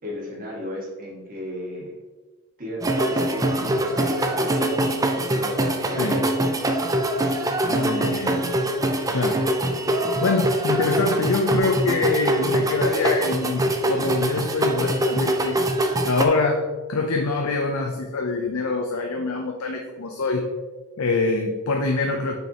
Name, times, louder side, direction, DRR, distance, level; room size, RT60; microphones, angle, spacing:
voice 1, 0.0-1.9 2.6-4.7 5.2-6.0, equal, 40° right, -4 dB, 1.9 m, -34 dB
sound 1, 2.8-16.3, right 1 dB, 15° right, 0.5 m, -23 dB
voice 2, 7.6-8.5 9.1-9.4 10.2-15.6 16.0-16.6 16.9-20.4 21.0-22.3, left 3 dB, 75° left, 2 dB, 0.6 m, -25 dB
6.7 x 6.4 x 2.9 m, 1.3 s
head